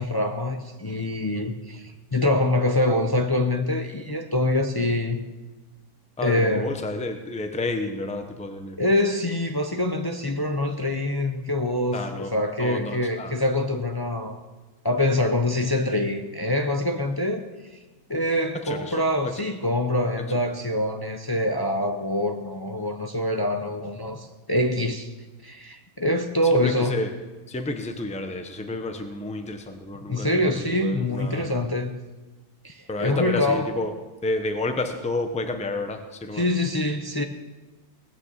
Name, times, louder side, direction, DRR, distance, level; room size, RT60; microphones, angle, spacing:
voice 1, 0.0-5.2 6.2-6.7 8.8-14.4 14.8-17.8 18.1-25.1 25.4-27.0 30.1-32.0 32.6-33.7 36.3-37.2, left 1 dB, 30° left, 4 dB, 0.4 m, -25 dB
voice 2, 6.2-8.8 11.9-12.3 12.6-13.3 18.5-19.0 19.2-19.3 26.4-27.1 27.5-31.5 32.9-33.9 34.2-36.5, left 2 dB, 5° left, 6 dB, 0.8 m, -30 dB
19.5 x 6.7 x 7.4 m, 1.2 s
omnidirectional pair, 1.6 m